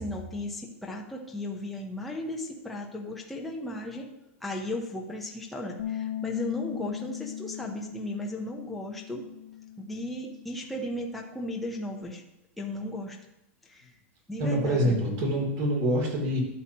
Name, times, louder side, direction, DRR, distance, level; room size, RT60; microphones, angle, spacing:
voice 1, 0.0-4.1 4.4-9.2 9.8-12.2 12.6-13.2 13.6-13.9 14.3-15.0, left 1 dB, ahead, -1 dB, 0.8 m, -35 dB
Bass guitar, 5.8-12.0, left 11 dB, 75° left, 0.8 m, -39 dB
voice 2, 14.4-16.4, equal, 40° right, 0 dB, 2.9 m, -26 dB
11.5 x 7.6 x 3.0 m, 0.91 s
supercardioid pair, 170°, 7 cm